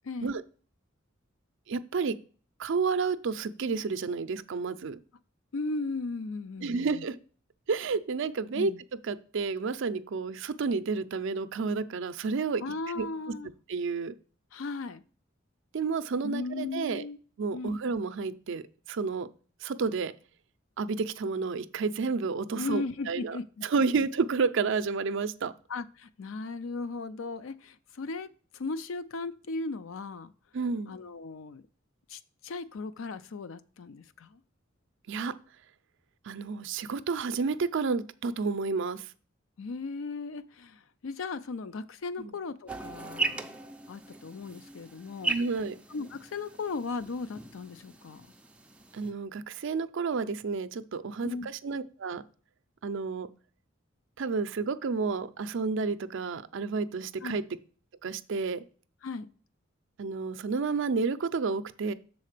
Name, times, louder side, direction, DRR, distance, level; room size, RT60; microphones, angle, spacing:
voice 1, 0.0-0.4 5.5-7.0 8.5-8.8 12.6-13.5 14.5-15.0 16.2-17.2 17.5-17.8 22.6-23.6 24.0-24.1 25.7-28.3 28.5-30.3 30.9-31.6 32.1-34.4 39.6-45.4 45.9-48.3 51.2-51.5 57.2-57.4 59.0-59.3, left 3 dB, 75° left, 0.5 m, -37 dB
voice 2, 1.7-2.2 2.6-5.0 6.6-7.2 7.7-8.7 9.0-12.6 13.0-13.1 13.7-14.1 15.7-17.1 17.4-18.6 18.9-19.3 19.6-20.1 20.8-25.5 30.5-30.9 35.1-35.3 36.3-39.0 42.2-42.3 45.3-45.8 48.9-52.2 52.8-53.3 54.2-57.4 58.0-58.6 60.0-61.9, right 4 dB, 65° right, 0.5 m, -30 dB
sound 1, 42.7-49.1, right 3 dB, 5° right, 0.5 m, -38 dB
6.6 x 4.1 x 6.6 m
head